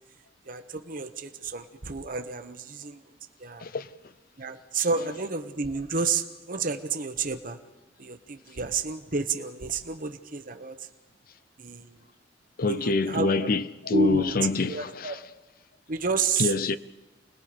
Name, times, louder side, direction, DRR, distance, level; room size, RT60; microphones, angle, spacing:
voice 1, 0.5-3.0 3.4-3.7 4.4-7.6 8.0-10.9 11.6-12.0 12.8-13.5 13.9-14.4 14.7-15.2 15.9-16.5, right 4 dB, 50° right, 1.2 m, -30 dB
voice 2, 12.6-15.2 16.4-16.8, left 3 dB, 55° left, 0.7 m, -26 dB
29.5 x 20.0 x 5.2 m
head